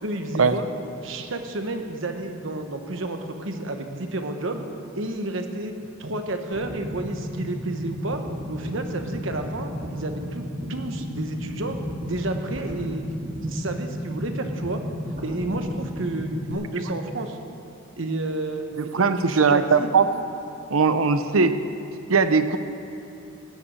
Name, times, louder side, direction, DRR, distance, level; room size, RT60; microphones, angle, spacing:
voice 1, 0.0-0.7 1.0-4.6 4.9-5.7 6.0-8.2 8.5-11.7 12.0-13.1 13.4-14.8 15.2-17.4 18.0-19.9, right 2 dB, 70° right, 5 dB, 1.2 m, -31 dB
sound 1, 6.5-16.5, equal, 40° right, 1.8 m, -33 dB
voice 2, 18.8-20.1 20.7-21.6 22.1-22.6, right 5 dB, 85° right, 10 dB, 0.7 m, -19 dB
16.0 x 9.2 x 6.4 m, 2.8 s
head